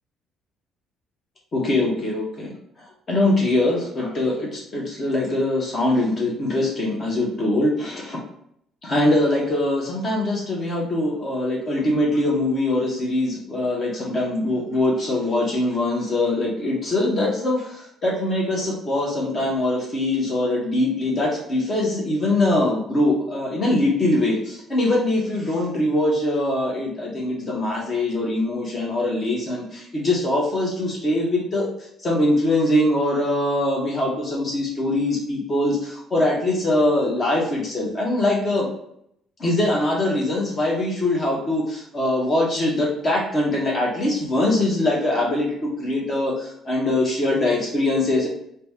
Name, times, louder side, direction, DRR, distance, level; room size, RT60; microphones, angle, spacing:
voice 1, 1.5-2.5 3.1-8.2 8.8-31.7 32.0-38.7 39.4-48.3, left 1 dB, 30° left, -2 dB, 0.9 m, -22 dB
2.9 x 2.7 x 3.5 m, 0.72 s
cardioid pair, 165°, 0 cm